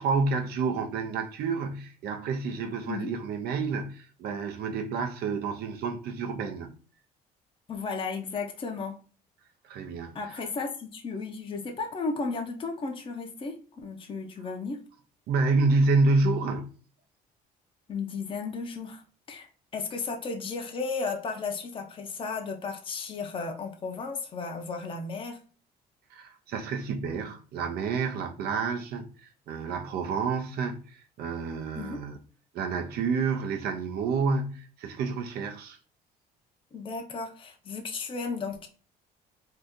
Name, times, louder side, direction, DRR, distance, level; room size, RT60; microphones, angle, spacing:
voice 1, 0.0-6.7 9.6-10.2 15.3-16.7 26.1-32.2 32.5-35.8, right 4 dB, 70° right, 0.6 m, -29 dB
voice 2, 7.7-8.9 10.1-14.8 17.9-19.0 19.3-19.5 19.7-25.4 31.7-32.0 36.7-38.7, left 4 dB, 30° left, 0.6 m, -34 dB
2.8 x 2.5 x 3.5 m
cardioid pair, 110°, 17 cm